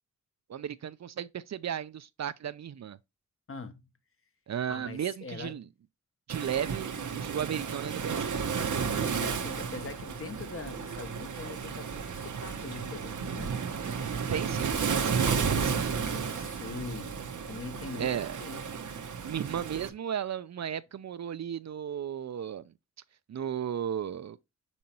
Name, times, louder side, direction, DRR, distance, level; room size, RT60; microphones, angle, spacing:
voice 1, 0.5-3.0 4.5-5.7 6.3-8.4 14.0-16.4 18.0-18.4 19.2-22.7 23.3-24.4, right 9 dB, 60° right, 0.4 m, -35 dB
voice 2, 3.5-3.8 4.7-5.6 9.2-13.9 14.3-14.6 15.9-18.6, left 4 dB, 45° left, 0.9 m, -43 dB
Waves surf, 6.3-19.9, right 6 dB, 80° right, 0.8 m, -32 dB
6.4 x 5.4 x 2.9 m
wide cardioid pair, 95°, 30 cm